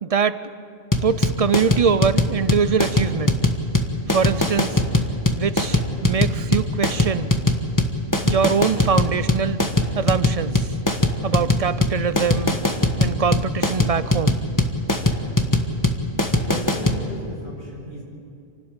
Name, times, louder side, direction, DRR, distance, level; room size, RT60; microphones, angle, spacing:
voice 1, 0.0-0.4 1.0-3.4 4.1-4.8 5.3-7.3 8.2-9.6 9.9-10.7 11.2-12.6 13.0-14.4, right 6 dB, 40° right, 14 dB, 0.6 m, -23 dB
sound 1, 0.9-17.0, left 1 dB, 20° left, 1.4 m, -20 dB
voice 2, 16.4-18.0, equal, 70° left, -6 dB, 7.5 m, -35 dB
27.5 x 12.5 x 8.9 m, 2.5 s
omnidirectional pair, 1.1 m